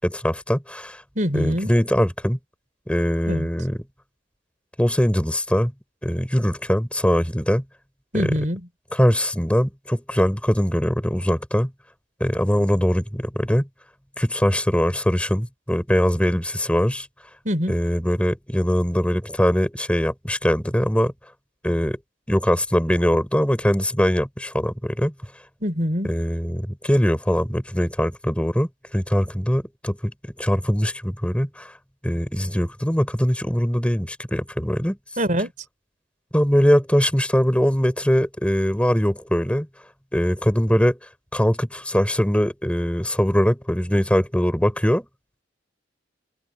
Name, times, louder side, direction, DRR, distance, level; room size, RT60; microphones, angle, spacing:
voice 1, 0.0-1.0 1.3-2.4 2.9-3.8 4.8-5.7 6.0-7.6 8.1-8.3 8.9-11.7 12.2-13.7 14.2-17.1 17.7-21.1 21.6-22.0 22.3-25.1 26.0-31.7 32.0-35.0 36.3-39.7 40.1-41.0 41.3-45.0, equal, 5° left, 5.1 m, -21 dB
voice 2, 1.2-1.7 3.2-3.5 8.1-8.6 17.4-17.8 25.6-26.1 35.2-35.5, equal, 45° right, 4.5 m, -24 dB
head